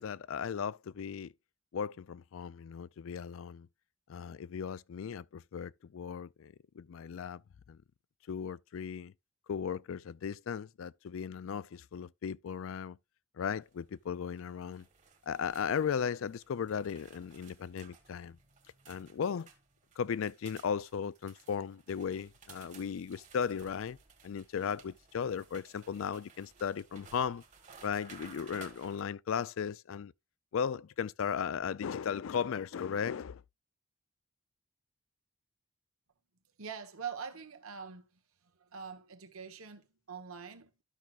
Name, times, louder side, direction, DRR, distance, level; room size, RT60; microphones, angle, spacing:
voice 1, 0.0-1.3 1.7-3.7 4.1-7.4 7.7-7.8 8.3-9.1 9.5-13.0 13.4-14.8 15.3-18.4 18.9-19.5 20.0-24.0 24.2-27.4 27.8-30.1 30.5-33.4, left 7 dB, 65° left, 0.4 m, -36 dB
sound 1, 13.6-29.0, right 5 dB, 35° right, 1.5 m, -58 dB
voice 2, 36.6-38.1 38.6-40.8, right 6 dB, 85° right, 1.2 m, -44 dB
12.5 x 6.0 x 2.5 m
head